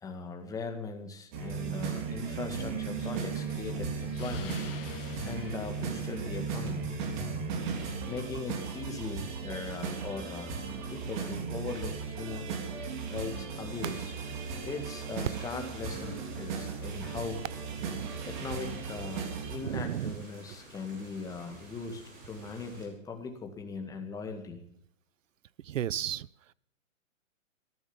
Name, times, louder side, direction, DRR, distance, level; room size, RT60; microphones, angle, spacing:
voice 1, 0.0-4.6 5.2-6.9 8.1-10.5 10.9-12.5 13.1-14.1 14.6-17.4 18.3-24.6, left 4 dB, 10° left, 4 dB, 1.8 m, -39 dB
sound 1, 1.3-19.6, right 5 dB, 35° right, 3.4 m, -36 dB
Explosion, 3.0-6.8, left 10 dB, 45° left, 1.7 m, -48 dB
sound 2, 13.7-22.9, right 1 dB, 20° right, 4.9 m, -52 dB
voice 2, 17.8-18.2 19.6-20.2 25.6-26.3, right 11 dB, 70° right, 23 dB, 0.7 m, -34 dB
14.5 x 13.5 x 7.1 m, 0.70 s
hypercardioid pair, 155°, 40 cm